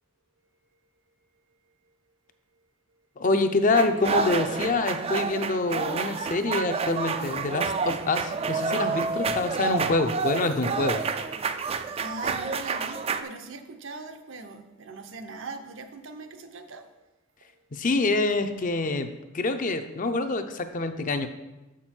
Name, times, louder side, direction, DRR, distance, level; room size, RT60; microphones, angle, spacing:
voice 1, 3.2-11.0 17.7-19.1 19.3-21.3, left 2 dB, 40° left, 8 dB, 0.5 m, -26 dB
sound 1, 3.7-13.2, right 5 dB, 30° right, 0.3 m, -29 dB
voice 2, 12.0-17.1 17.4-17.6, right 3 dB, 65° right, 7 dB, 0.7 m, -41 dB
7.1 x 6.0 x 4.4 m, 1.0 s
head